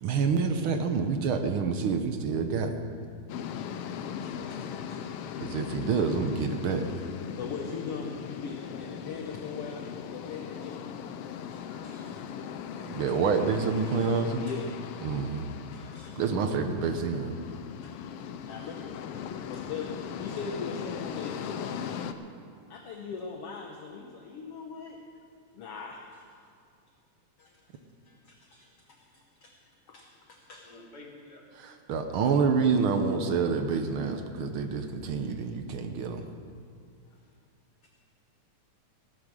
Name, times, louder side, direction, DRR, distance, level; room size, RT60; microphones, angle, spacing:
voice 1, 0.0-2.8 5.4-6.8 12.8-14.5 15.0-15.5 16.2-17.3 31.6-36.2, right 5 dB, 70° right, 6 dB, 1.3 m, -27 dB
sound 1, 3.3-22.1, left 8 dB, 85° left, 1.3 m, -39 dB
voice 2, 3.7-5.0 5.2-5.4 7.4-10.8 11.5-12.3 12.8-12.9 14.4-14.6 15.7-16.2 17.8-17.9 18.4-18.7 19.5-22.0 22.7-25.0 25.5-26.3 27.4-27.6 28.1-29.0 29.4-29.5 29.9-30.9, left 5 dB, 60° left, 2 dB, 1.7 m, -41 dB
voice 3, 18.2-19.0 30.6-31.4, left 2 dB, 35° left, -3 dB, 3.0 m, -51 dB
17.0 x 11.0 x 6.2 m, 2.3 s
omnidirectional pair, 3.4 m